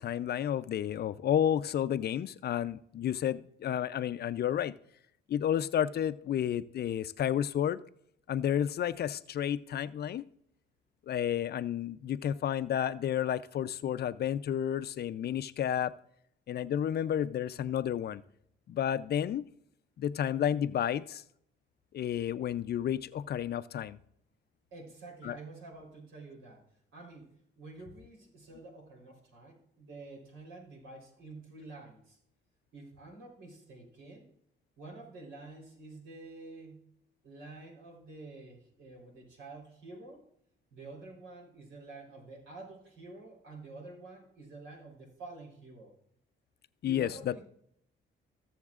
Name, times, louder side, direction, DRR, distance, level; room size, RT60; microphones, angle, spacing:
voice 1, 0.0-4.7 5.3-7.8 8.3-10.2 11.1-15.9 16.5-18.2 18.7-19.5 20.0-21.2 21.9-24.0 25.2-25.4 46.8-47.4, left 10 dB, 55° left, 14 dB, 0.5 m, -31 dB
voice 2, 24.7-26.6 26.9-27.3 27.6-32.2 32.7-34.3 34.8-36.8 37.2-40.2 40.7-45.9 46.8-47.4, right 3 dB, 80° right, -1 dB, 3.7 m, -49 dB
20.5 x 7.2 x 2.4 m, 0.71 s
cardioid pair, 90°, 20 cm